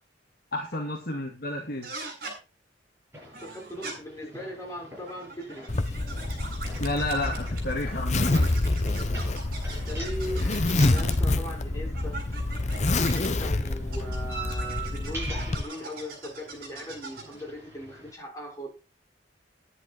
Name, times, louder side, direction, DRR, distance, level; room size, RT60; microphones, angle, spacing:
voice 1, 0.5-1.9 6.8-8.5, left 1 dB, 55° left, 1 dB, 2.4 m, -31 dB
sound 1, 1.8-2.4 3.3-3.9 4.9-7.7 8.1-11.3 11.9-13.3 13.9-17.4, right 3 dB, 55° right, 7.6 m, -41 dB
sound 2, 3.1-18.1, right 2 dB, 15° right, 7.7 m, -45 dB
voice 2, 3.4-5.7 9.7-12.2 13.1-18.7, equal, 20° left, -2 dB, 6.4 m, -39 dB
Zipper (clothing), 5.7-15.6, left 2 dB, 40° left, 0.9 m, -27 dB
11.0 x 10.5 x 4.8 m, 0.32 s
head